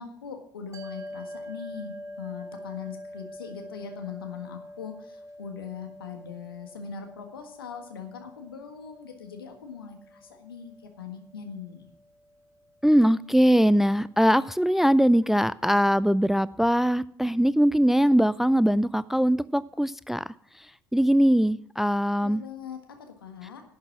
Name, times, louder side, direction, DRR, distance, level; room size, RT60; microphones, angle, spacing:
voice 1, 0.0-11.9 22.2-23.6, left 7 dB, 80° left, 5 dB, 1.6 m, -41 dB
sound 1, 0.7-13.2, equal, 25° right, 3.2 m, -45 dB
voice 2, 12.8-20.3 20.9-22.4, equal, 5° right, 19 dB, 0.3 m, -21 dB
11.5 x 8.4 x 6.0 m, 0.67 s
figure-of-eight pair, 60°, 12 cm